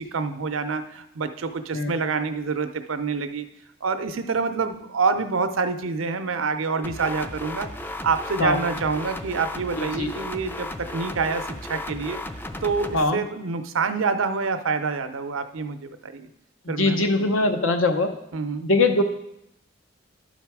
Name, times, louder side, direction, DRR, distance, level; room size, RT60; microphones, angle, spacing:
voice 1, 0.0-3.5 3.8-12.2 12.6-16.3 16.7-17.3 18.3-18.7, right 4 dB, 90° right, 9 dB, 0.6 m, -27 dB
sound 1, 6.8-13.0, left 1 dB, 10° left, 0.4 m, -35 dB
voice 2, 9.8-10.1 12.9-13.2 16.6-18.1 18.6-19.0, left 2 dB, 75° left, 6 dB, 0.8 m, -22 dB
11.5 x 4.1 x 4.7 m, 0.80 s
head